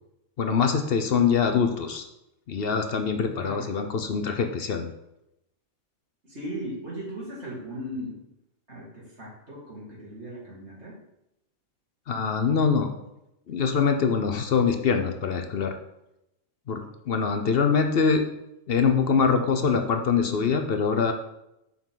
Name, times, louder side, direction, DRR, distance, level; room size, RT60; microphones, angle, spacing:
voice 1, 0.4-2.0 2.5-4.9 12.1-12.9 13.5-15.8 16.7-18.2 18.7-21.1, left 5 dB, 55° left, 6 dB, 0.7 m, -24 dB
voice 2, 3.4-3.7 6.2-8.2 8.7-11.0, equal, 50° right, -6 dB, 2.6 m, -37 dB
7.1 x 5.5 x 3.8 m, 0.86 s
omnidirectional pair, 1.4 m